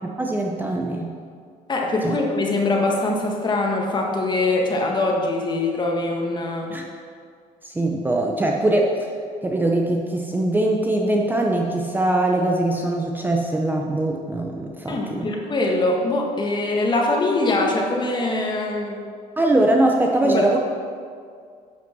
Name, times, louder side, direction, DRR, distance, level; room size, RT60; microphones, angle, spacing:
voice 1, 0.0-1.1 2.0-2.2 6.7-6.8 7.6-9.1 9.4-15.3 19.4-20.6, right 1 dB, 15° right, 0 dB, 0.7 m, -22 dB
voice 2, 1.7-6.7 14.9-19.0 20.2-20.6, left 2 dB, 30° left, 0 dB, 1.7 m, -23 dB
10.5 x 5.8 x 6.1 m, 2.2 s
cardioid pair, 130°, 15 cm